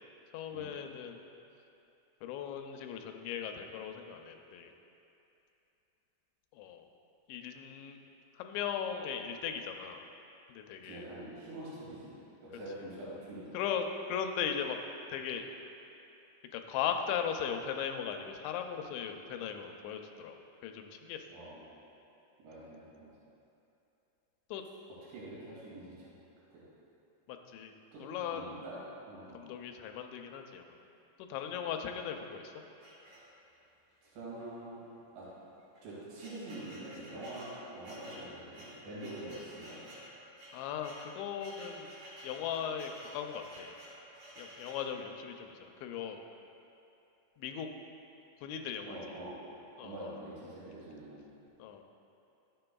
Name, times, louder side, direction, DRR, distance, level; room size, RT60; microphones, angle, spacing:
voice 1, 0.3-1.2 2.2-4.7 6.5-6.9 7.3-8.0 8.4-10.0 10.5-11.0 13.5-14.8 15.1-15.5 16.5-21.3 24.5-24.6 27.3-27.7 28.0-28.6 29.3-30.8 31.2-32.5 40.5-41.9 42.2-43.8 44.4-46.2 47.4-47.7 48.4-49.0 49.8-49.9 51.6-51.8, left 8 dB, 85° left, 5 dB, 2.8 m, -38 dB
voice 2, 10.8-12.1 12.4-13.5 21.3-21.6 22.4-23.1 25.1-26.2 26.5-26.6 27.9-28.0 28.3-29.4 34.0-34.8 35.2-35.3 35.8-39.8 48.9-49.4 49.8-51.2, right 1 dB, 75° right, -8 dB, 4.3 m, -45 dB
sound 1, 32.8-33.7 34.4-34.5 34.8-34.9 35.6-44.9, equal, 55° right, 3.4 m, -51 dB
13.5 x 7.7 x 2.3 m, 2.8 s
omnidirectional pair, 5.2 m